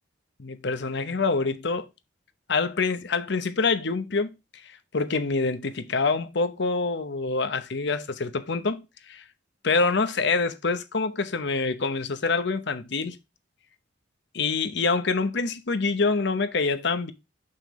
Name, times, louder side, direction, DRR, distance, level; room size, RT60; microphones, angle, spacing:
voice 1, 0.4-1.9 2.5-4.3 4.6-9.2 9.6-13.2 14.3-17.1, left 4 dB, 65° left, 0.8 m, -26 dB
6.8 x 5.7 x 3.1 m
head